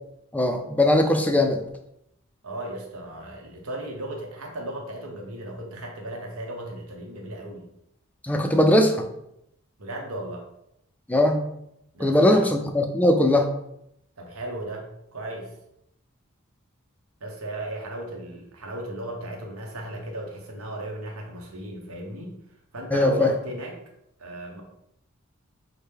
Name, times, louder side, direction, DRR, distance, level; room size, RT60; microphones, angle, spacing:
voice 1, 0.3-1.6 8.2-9.0 11.1-11.4 12.0-13.5 22.9-23.3, left 1 dB, 5° left, 4 dB, 0.4 m, -20 dB
voice 2, 2.4-7.7 9.8-10.4 11.9-12.5 14.2-15.5 17.2-22.3 22.7-23.8 24.2-24.6, right 1 dB, 75° right, 0 dB, 1.0 m, -36 dB
6.1 x 2.1 x 3.5 m, 0.80 s
head